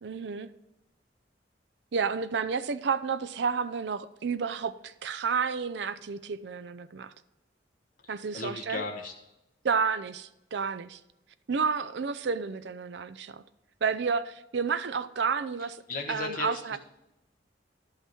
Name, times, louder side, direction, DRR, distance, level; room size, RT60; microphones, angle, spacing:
voice 1, 0.0-0.5 1.9-7.1 8.1-8.8 9.6-11.0 11.5-13.4 13.8-15.8 16.1-16.8, right 5 dB, 70° right, 0.5 m, -30 dB
voice 2, 8.0-9.1 15.9-16.8, left 4 dB, 50° left, 1.2 m, -36 dB
11.5 x 5.7 x 4.4 m
head